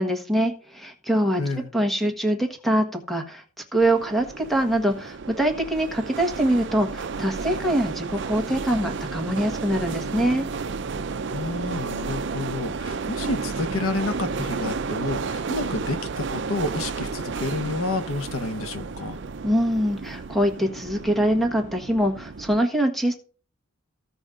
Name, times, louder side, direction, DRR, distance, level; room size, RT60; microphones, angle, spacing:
voice 1, 0.0-1.4 1.7-3.4 3.7-10.5 19.4-23.1, right 1 dB, ahead, 1.3 m, -24 dB
voice 2, 1.4-1.7 11.3-19.2, left 2 dB, 80° left, 1.0 m, -30 dB
sound 1, 3.8-22.6, right 4 dB, 55° right, 0.5 m, -32 dB
15.5 x 5.3 x 3.8 m
head